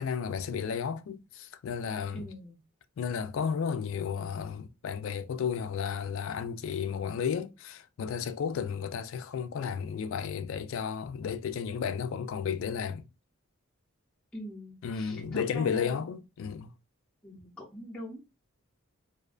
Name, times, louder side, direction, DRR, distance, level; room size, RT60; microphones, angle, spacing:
voice 1, 0.0-2.3 3.0-13.1 14.8-16.7, left 7 dB, 65° left, 0.3 m, -33 dB
voice 2, 2.1-2.6 14.3-16.0 17.2-18.2, equal, 5° left, 0.6 m, -43 dB
2.5 x 2.2 x 2.3 m
head